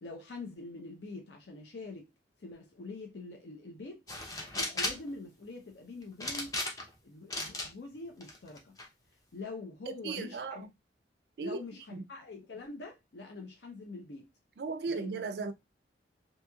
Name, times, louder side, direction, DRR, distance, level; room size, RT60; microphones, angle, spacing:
voice 1, 0.0-2.1 2.4-4.0 4.5-6.6 7.0-8.8 9.3-10.6 11.4-14.3 14.9-15.2, left 3 dB, 70° left, 0.6 m, -44 dB
sound 1, 4.1-5.1 6.2-7.0 7.3-7.7 8.2-8.9, left 2 dB, 20° left, 0.6 m, -35 dB
voice 2, 9.9-10.7 11.4-11.6 11.9-12.1 14.6-15.5, right 4 dB, 65° right, 0.4 m, -36 dB
2.9 x 2.7 x 2.3 m
head